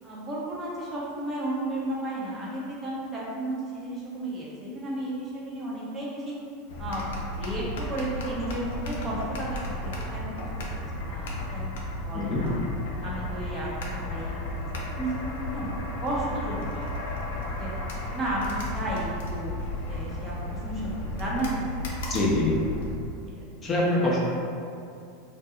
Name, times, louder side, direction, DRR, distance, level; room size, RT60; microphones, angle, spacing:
voice 1, 0.0-6.3 6.8-7.0 7.3-11.7 12.0-12.6 13.0-15.7 16.0-17.3 17.6-17.7 18.1-19.6 19.9-22.0 23.2-23.4 24.0-24.3, right 1 dB, 25° right, -6 dB, 1.0 m, -33 dB
sound 1, 6.7-22.9, left 1 dB, 75° left, 0.5 m, -34 dB
voice 2, 22.1-22.6 23.6-24.3, left 1 dB, 30° left, -4 dB, 0.8 m, -24 dB
2.7 x 2.3 x 3.7 m, 2.5 s
hypercardioid pair, 105°, 0 cm